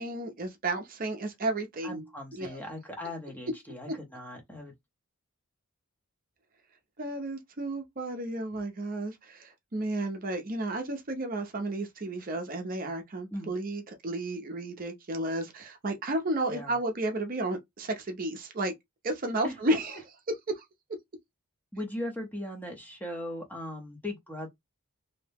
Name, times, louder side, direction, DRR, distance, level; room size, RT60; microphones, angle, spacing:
voice 1, 0.0-2.0 2.3-2.6 3.9-4.0 7.0-18.7 19.0-20.0 20.5-20.6, right 2 dB, 40° right, 0.5 m, -32 dB
voice 2, 1.8-4.7 13.3-13.5 16.5-16.8 19.4-19.8 21.7-24.5, left 1 dB, 10° left, 0.6 m, -38 dB
2.7 x 2.0 x 3.4 m
head